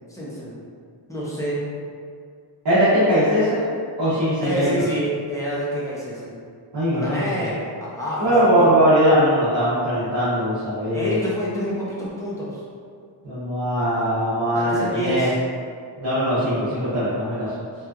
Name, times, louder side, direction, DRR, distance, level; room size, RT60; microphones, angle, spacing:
voice 1, 0.1-0.6 1.1-1.7 4.4-6.4 6.9-8.7 10.9-12.6 14.5-15.4, right 1 dB, 10° left, -7 dB, 0.4 m, -28 dB
voice 2, 2.6-3.7 4.0-4.7 6.7-7.4 8.2-11.2 13.2-15.3 16.0-17.5, equal, 55° right, -13 dB, 0.8 m, -20 dB
2.8 x 2.3 x 2.3 m, 2.2 s
wide cardioid pair, 160°, 47 cm